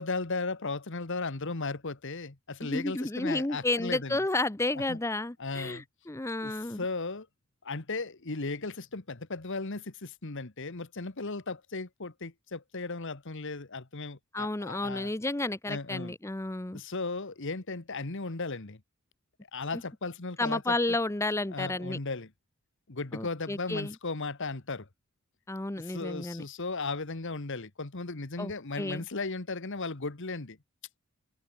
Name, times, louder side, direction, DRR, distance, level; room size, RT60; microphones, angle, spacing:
voice 1, 0.0-4.2 4.9-5.0 5.4-5.8 6.4-7.3 7.6-15.1 15.7-16.1 16.7-18.8 19.5-20.8 21.5-22.3 22.9-24.9 25.8-30.6, left 3 dB, 60° left, 1.4 m, -36 dB
voice 2, 2.6-6.8 14.3-16.8 20.4-22.0 23.1-23.9 25.5-26.4 28.4-28.5 28.8-29.0, left 2 dB, 15° left, 0.7 m, -31 dB
head